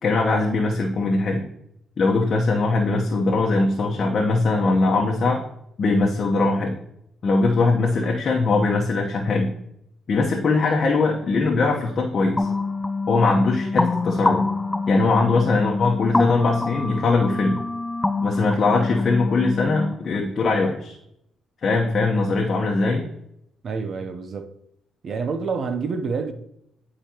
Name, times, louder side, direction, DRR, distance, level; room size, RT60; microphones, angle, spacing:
voice 1, 0.0-1.4 2.0-5.4 5.8-6.7 7.2-9.5 10.1-12.5 13.1-14.5 14.9-17.6 18.2-21.0 21.6-23.1, left 3 dB, 50° left, 1.0 m, -21 dB
sound 1, 12.4-19.9, left 3 dB, 15° left, 0.5 m, -25 dB
voice 2, 23.6-24.5 25.0-26.3, right 5 dB, 55° right, 0.7 m, -27 dB
10.0 x 4.9 x 2.9 m
cardioid pair, 90°, 0 cm